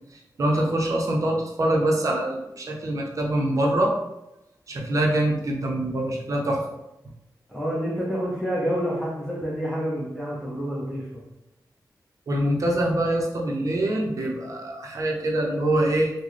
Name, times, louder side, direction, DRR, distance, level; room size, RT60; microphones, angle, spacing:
voice 1, 0.1-4.0 4.7-6.6 12.3-16.1, right 1 dB, 50° right, 0 dB, 0.6 m, -24 dB
voice 2, 7.5-11.1, equal, ahead, -6 dB, 0.6 m, -28 dB
3.8 x 2.1 x 3.1 m, 0.93 s
wide cardioid pair, 175°, 7 cm